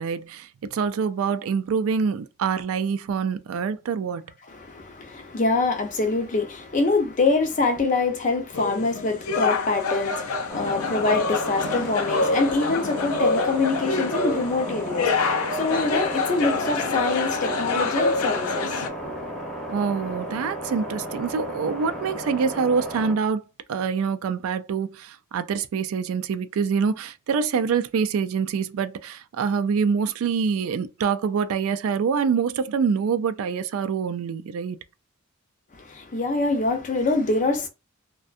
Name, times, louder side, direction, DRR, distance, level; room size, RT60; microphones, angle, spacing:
voice 1, 0.0-4.3 19.7-23.4 23.7-34.8, right 6 dB, 70° right, 0.3 m, -25 dB
voice 2, 4.5-19.1 35.8-37.7, left 3 dB, 35° left, 0.5 m, -25 dB
sound 1, 8.5-18.9, left 3 dB, 90° left, 0.5 m, -26 dB
sound 2, 10.5-23.2, equal, ahead, 0.7 m, -34 dB
2.6 x 2.2 x 2.4 m
head